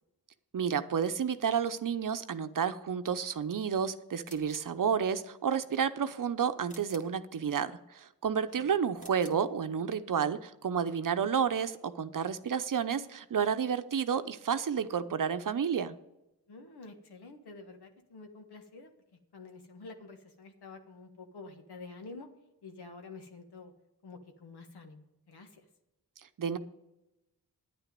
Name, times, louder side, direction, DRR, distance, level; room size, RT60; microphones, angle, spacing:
voice 1, 0.5-16.0 26.4-26.6, right 7 dB, 55° right, 10 dB, 0.8 m, -31 dB
sound 1, 4.2-4.8 6.7-7.2 8.9-9.5, left 1 dB, 20° left, 1.9 m, -52 dB
voice 2, 16.5-18.9 19.3-22.3 22.6-23.7 24.0-25.7, left 3 dB, 80° left, 5 dB, 1.5 m, -49 dB
10.0 x 9.1 x 5.2 m, 0.93 s
cardioid pair, 45°, 39 cm